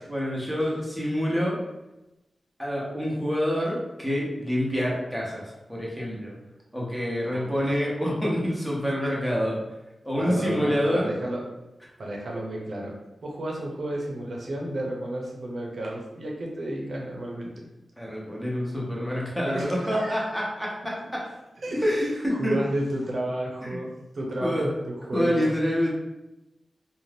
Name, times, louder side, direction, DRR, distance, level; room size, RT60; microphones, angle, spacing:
voice 1, 0.1-1.6 2.6-6.3 6.7-9.6 10.0-11.1 18.0-21.2 21.8-22.6 23.6-23.7 24.4-24.7 25.1-25.9, equal, 5° left, -4 dB, 1.0 m, -27 dB
voice 2, 7.3-7.8 10.2-11.4 12.0-13.0 13.2-17.7 19.0-19.1 19.5-20.5 20.8-21.1 21.6-22.1 22.3-25.6, right 1 dB, 65° right, -1 dB, 0.7 m, -32 dB
2.6 x 2.4 x 3.3 m, 0.96 s
cardioid pair, 70°, 0 cm